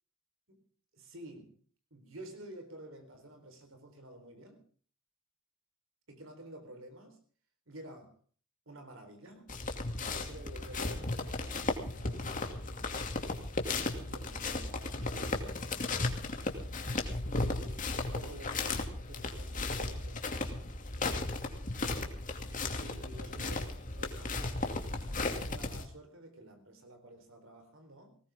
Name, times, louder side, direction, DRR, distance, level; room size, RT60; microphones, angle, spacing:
voice 1, 0.9-1.6 1.9-4.7 6.1-7.2 7.7-8.2 8.7-9.5 10.1-12.6 13.9-15.8 17.3-20.8 22.7-24.8 25.1-28.2, right 1 dB, 70° right, 4.1 m, -51 dB
sound 1, 9.5-25.8, left 2 dB, 40° left, 2.5 m, -35 dB
20.0 x 18.5 x 3.7 m
head